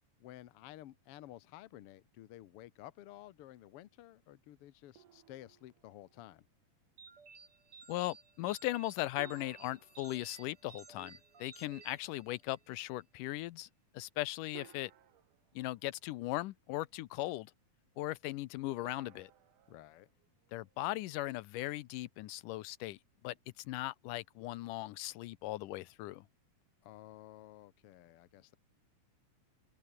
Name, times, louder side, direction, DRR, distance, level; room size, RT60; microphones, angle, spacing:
voice 1, 0.2-6.4 19.7-20.1 26.8-28.6, left 14 dB, 65° left, 1.5 m, -53 dB
sound 1, 5.0-6.4 9.2-11.2 12.9-13.0 14.5-16.4 18.8-20.9, right 11 dB, 75° right, 3.0 m, -59 dB
sound 2, 7.0-12.7, right 5 dB, 40° right, 4.5 m, -57 dB
voice 2, 7.9-13.7 13.9-14.9 15.6-17.5 18.0-19.3 20.5-23.0 23.2-26.3, left 17 dB, 85° left, 2.3 m, -38 dB
open air
omnidirectional pair, 3.7 m